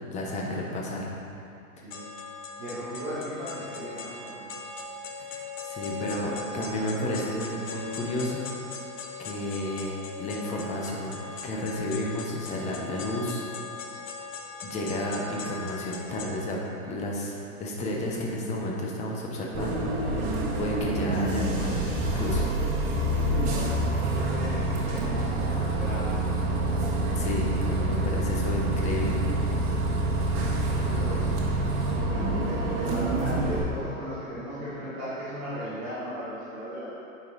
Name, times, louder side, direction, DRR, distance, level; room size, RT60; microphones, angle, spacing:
voice 1, 0.1-1.1 5.2-8.5 9.2-13.4 14.6-16.6 16.9-22.4 27.2-29.2, left 1 dB, 15° left, -2 dB, 0.9 m, -32 dB
sound 1, 1.9-16.3, left 3 dB, 65° left, 1.1 m, -39 dB
voice 2, 2.6-4.5 23.3-26.2 29.9-31.4 32.1-36.9, equal, 10° right, -13 dB, 0.3 m, -37 dB
Bus, 19.5-33.6, right 1 dB, 40° right, 1.7 m, -27 dB
8.9 x 5.4 x 4.0 m, 2.7 s
hypercardioid pair, 145°, 43 cm